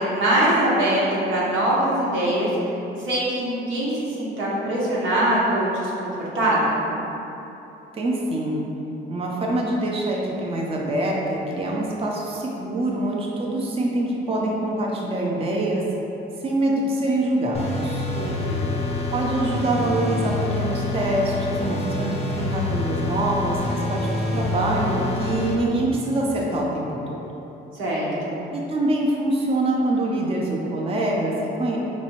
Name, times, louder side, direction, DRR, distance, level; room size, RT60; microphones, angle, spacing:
voice 1, 0.0-2.5 3.0-3.9 4.2-6.1 6.3-6.8 18.1-18.7 27.7-28.4, right 1 dB, 85° right, -7 dB, 0.9 m, -22 dB
voice 2, 7.9-8.6 9.1-15.8 16.4-18.1 19.1-27.2 28.5-31.8, right 1 dB, 30° right, -2 dB, 0.5 m, -25 dB
sound 1, 17.5-25.6, left 2 dB, 30° left, 0.5 m, -27 dB
4.0 x 2.6 x 2.9 m, 3.0 s
cardioid pair, 90°, 20 cm